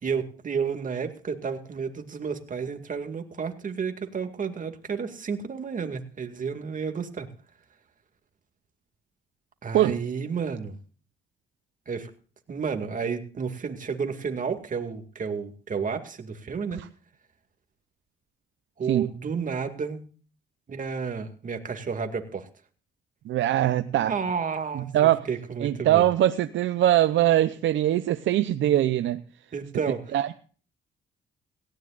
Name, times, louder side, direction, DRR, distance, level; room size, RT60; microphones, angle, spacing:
voice 1, 0.0-7.3 9.6-10.8 11.9-12.1 12.5-16.8 18.8-20.0 20.7-22.5 23.9-24.9 25.3-26.0 29.5-30.0, right 6 dB, 40° right, 6 dB, 2.3 m, -31 dB
voice 2, 23.3-24.1 24.7-25.3 25.6-29.2 30.1-30.3, right 13 dB, 70° right, 10 dB, 0.7 m, -22 dB
18.0 x 16.0 x 2.5 m, 0.40 s
cardioid pair, 90°, 20 cm